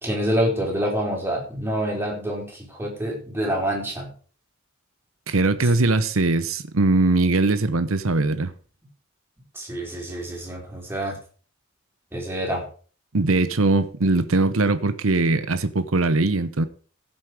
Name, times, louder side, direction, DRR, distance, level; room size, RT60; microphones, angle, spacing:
voice 1, 0.0-4.1 5.6-5.7 9.5-11.2 12.1-12.7, equal, 10° right, 4.8 m, -27 dB
voice 2, 5.3-8.5 13.1-16.7, right 2 dB, 90° right, 1.0 m, -21 dB
16.0 x 7.5 x 5.0 m
head